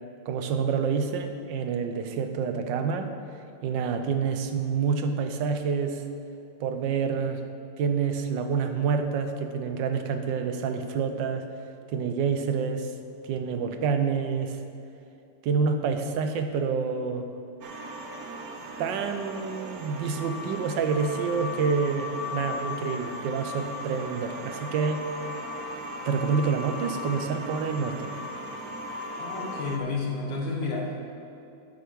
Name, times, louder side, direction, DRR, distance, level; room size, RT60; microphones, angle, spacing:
voice 1, 0.3-3.1 3.6-6.0 6.6-7.4 7.8-11.5 11.9-12.9 13.2-14.6 15.4-17.3 18.8-25.0 26.1-28.1, right 5 dB, 80° right, 7 dB, 1.4 m, -27 dB
sound 1, 17.6-29.8, left 1 dB, 65° right, 1.0 m, -37 dB
voice 2, 29.2-30.9, left 3 dB, 75° left, -2 dB, 2.3 m, -31 dB
9.2 x 6.9 x 6.2 m, 2.8 s
omnidirectional pair, 2.0 m